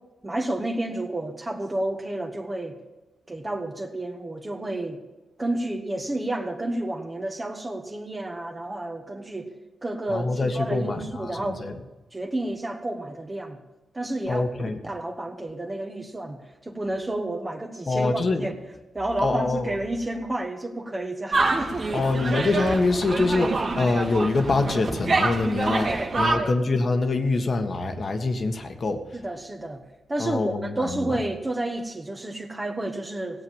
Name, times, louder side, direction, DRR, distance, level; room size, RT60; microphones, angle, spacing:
voice 1, 0.2-2.8 3.3-5.0 5.4-9.6 9.8-11.6 12.1-13.6 13.9-14.4 14.8-18.5 18.9-22.1 25.8-26.6 29.1-33.4, right 1 dB, 25° right, 3 dB, 1.7 m, -31 dB
voice 2, 10.1-11.7 14.3-14.8 17.9-18.5 19.2-19.7 21.9-25.9 26.2-29.2 30.2-31.2, left 3 dB, 55° left, 7 dB, 1.6 m, -25 dB
sound 1, 21.3-26.4, right 3 dB, 55° right, 2.1 m, -26 dB
17.5 x 8.1 x 7.3 m, 1.2 s
cardioid pair, 70°, 0 cm